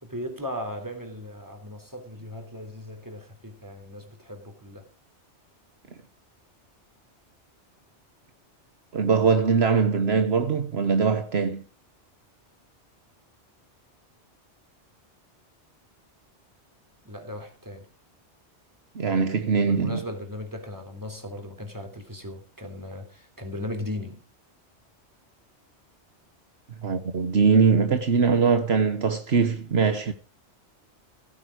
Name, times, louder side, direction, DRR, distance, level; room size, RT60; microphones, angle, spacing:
voice 1, 0.0-4.9 17.1-17.9 19.6-24.2, left 1 dB, 15° right, 3.5 m, -37 dB
voice 2, 8.9-11.6 18.9-20.0 26.8-30.1, right 5 dB, 65° right, 1.3 m, -22 dB
16.0 x 9.4 x 4.9 m
omnidirectional pair, 1.2 m